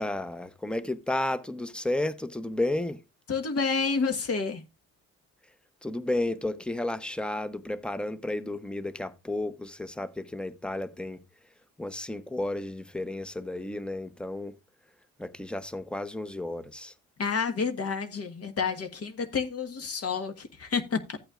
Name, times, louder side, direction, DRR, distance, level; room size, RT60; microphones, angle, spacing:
voice 1, 0.0-3.0 5.8-11.2 11.8-14.6 15.2-16.9, left 1 dB, 5° left, 0.7 m, -32 dB
voice 2, 3.3-4.6 17.2-21.2, left 5 dB, 50° left, 1.4 m, -29 dB
14.0 x 8.6 x 2.4 m
cardioid pair, 90°, 30 cm